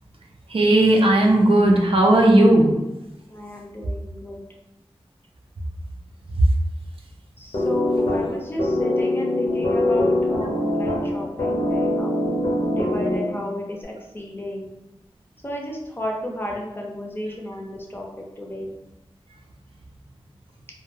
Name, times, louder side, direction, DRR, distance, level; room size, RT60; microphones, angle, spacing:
voice 1, 0.5-2.7 6.4-6.5, right 1 dB, 70° right, 0 dB, 0.5 m, -16 dB
voice 2, 3.3-4.4 7.4-12.2 12.8-14.7 15.4-18.1 18.4-18.7, left 1 dB, 20° left, -1 dB, 0.5 m, -32 dB
sound 1, 7.5-13.5, left 1 dB, 85° left, 0.6 m, -23 dB
2.2 x 2.1 x 3.2 m, 0.96 s
wide cardioid pair, 70°, 10 cm